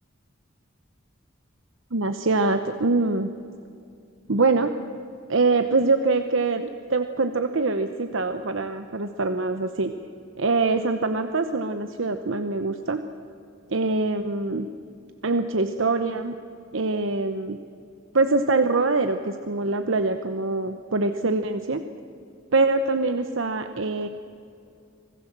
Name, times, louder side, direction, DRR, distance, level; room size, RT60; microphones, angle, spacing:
voice 1, 1.9-3.3 4.3-4.7 5.3-9.9 10.4-13.0 13.7-14.7 15.2-16.3 16.7-17.6 18.1-21.8 22.5-24.1, right 3 dB, 75° right, 8 dB, 0.9 m, -24 dB
25.5 x 18.0 x 7.5 m, 2.5 s
head